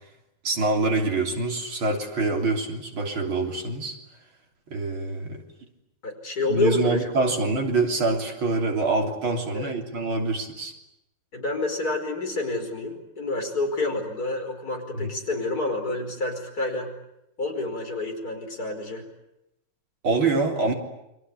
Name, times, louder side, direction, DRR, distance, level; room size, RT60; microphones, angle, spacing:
voice 1, 0.4-3.9 4.7-5.4 6.5-10.7 14.9-15.1 20.0-20.7, right 3 dB, 75° right, 2 dB, 4.3 m, -25 dB
voice 2, 6.0-7.3 9.5-9.7 11.3-16.9 17.4-19.1, left 2 dB, 45° left, 3 dB, 5.7 m, -28 dB
29.5 x 23.5 x 8.5 m, 0.87 s
omnidirectional pair, 2.2 m